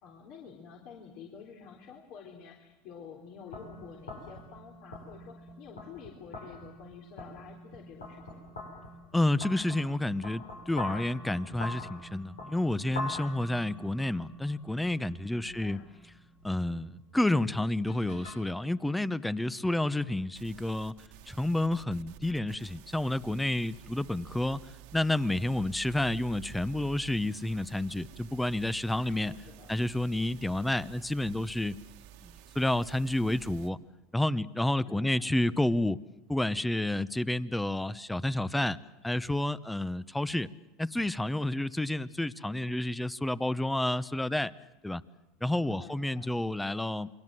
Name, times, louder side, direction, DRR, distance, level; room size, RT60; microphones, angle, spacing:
voice 1, 0.0-8.5 15.4-15.9 28.9-29.8 34.8-35.6 45.6-46.4, left 6 dB, 60° left, 0 dB, 3.6 m, -49 dB
sound 1, 3.5-18.3, left 2 dB, 90° left, 7.7 m, -44 dB
voice 2, 9.1-15.8 16.4-20.9 21.3-24.6 24.9-29.3 29.7-31.8 32.2-33.8 34.1-36.0 36.3-38.8 39.0-40.5 40.8-44.5 44.8-45.0 45.4-47.1, left 1 dB, 5° left, 16 dB, 0.9 m, -30 dB
sound 2, 20.3-33.7, right 11 dB, 70° right, 1.8 m, -51 dB
28.5 x 22.0 x 7.7 m, 1.0 s
hypercardioid pair, 90°, 0 cm